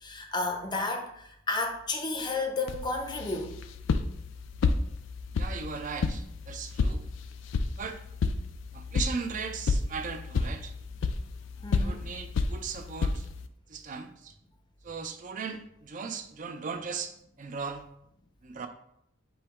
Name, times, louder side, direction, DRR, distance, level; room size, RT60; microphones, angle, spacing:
voice 1, 0.0-3.5 11.6-12.1, left 3 dB, 20° left, 4 dB, 0.6 m, -32 dB
sound 1, 2.7-13.5, left 4 dB, 70° left, 0.3 m, -31 dB
voice 2, 5.4-7.1 7.8-8.0 8.7-10.7 11.7-13.3 13.7-14.3 14.8-17.1 17.4-17.8 18.4-18.7, right 5 dB, 40° right, 7 dB, 0.4 m, -37 dB
5.6 x 2.2 x 4.1 m, 0.74 s
head